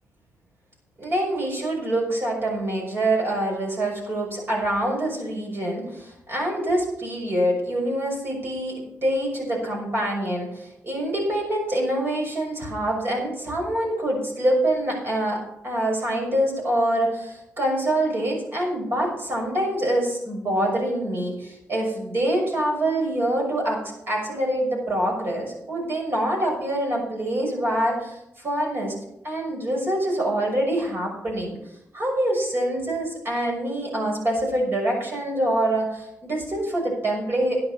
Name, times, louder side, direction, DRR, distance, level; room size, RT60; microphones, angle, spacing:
voice 1, 1.0-28.9 29.2-31.6 31.9-37.6, right 1 dB, 50° right, -1 dB, 6.1 m, -25 dB
11.5 x 10.5 x 5.6 m, 0.85 s
cardioid pair, 95°, 5 cm